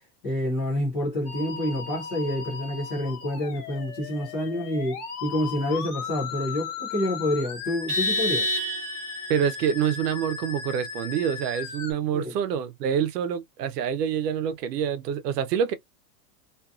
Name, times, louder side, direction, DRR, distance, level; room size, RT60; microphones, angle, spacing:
voice 1, 0.2-8.6 12.1-12.2, left 1 dB, 15° left, 0.3 m, -28 dB
Musical instrument, 1.3-11.9, left 6 dB, 40° left, 0.9 m, -37 dB
Vehicle horn car horn honking, 7.9-9.3, left 1 dB, 25° right, 0.8 m, -27 dB
voice 2, 9.3-15.7, right 8 dB, 85° right, 0.7 m, -26 dB
2.5 x 2.4 x 2.4 m
supercardioid pair, 165°, 47 cm